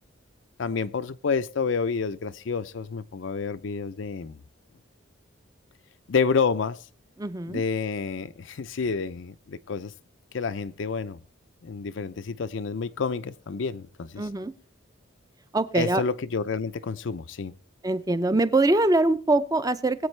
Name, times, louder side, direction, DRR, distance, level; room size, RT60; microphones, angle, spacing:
voice 1, 0.6-4.4 6.1-6.8 7.5-9.9 10.3-11.2 11.6-14.2 15.7-17.5, left 5 dB, 70° left, 0.5 m, -29 dB
voice 2, 7.2-7.6 14.2-14.5 15.5-16.0 17.8-20.1, right 2 dB, 15° right, 0.5 m, -23 dB
21.5 x 8.2 x 3.2 m
head